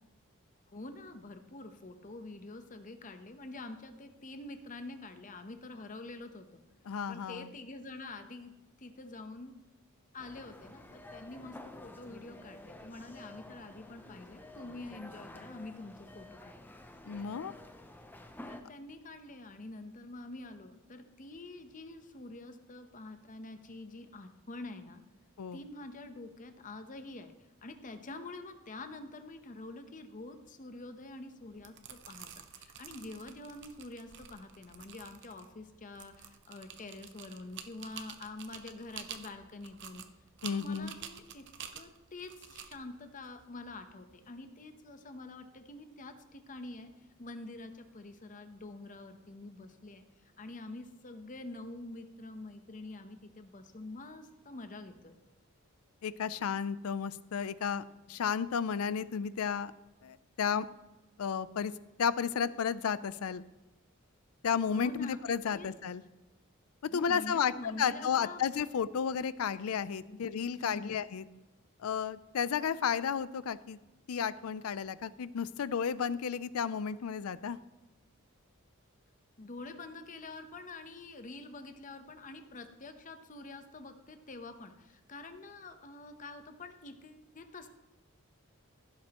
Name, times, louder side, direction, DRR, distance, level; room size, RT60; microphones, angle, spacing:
voice 1, 0.7-6.6 7.1-9.5 10.1-16.6 18.5-25.0 25.5-27.3 27.6-40.0 40.5-41.5 41.7-50.0 50.4-55.2 64.7-65.2 65.5-65.7 66.9-68.4 70.1-70.2 70.6-70.9 79.4-87.7, left 2 dB, 40° left, 8 dB, 0.8 m, -46 dB
voice 2, 6.9-7.5 17.1-17.5 25.4-25.6 40.4-40.9 56.0-59.7 60.0-60.7 61.2-61.7 62.0-63.4 64.4-66.0 66.9-71.2 71.8-73.8 74.1-77.6, left 7 dB, 90° left, 17 dB, 0.4 m, -33 dB
sound 1, 10.2-18.6, left 1 dB, 10° left, 0.6 m, -50 dB
sound 2, 31.5-44.2, right 8 dB, 55° right, 0.7 m, -50 dB
15.5 x 7.5 x 3.0 m, 1.0 s
head